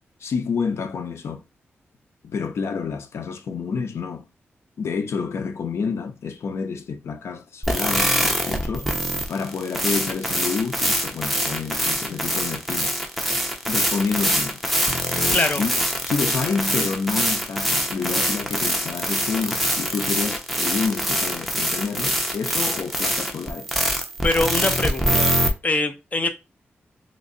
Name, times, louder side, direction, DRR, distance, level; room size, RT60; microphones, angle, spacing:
voice 1, 0.2-1.4 2.2-4.3 4.8-8.9 9.3-12.9 13.7-14.6 15.1-15.7 16.0-23.7, left 5 dB, 80° left, 0.6 m, -28 dB
sound 1, 7.6-25.5, equal, ahead, 0.7 m, -24 dB
voice 2, 15.1-15.6 24.2-25.3 25.6-26.3, left 2 dB, 35° left, 0.7 m, -23 dB
3.1 x 2.5 x 3.8 m
wide cardioid pair, 105°, 4 cm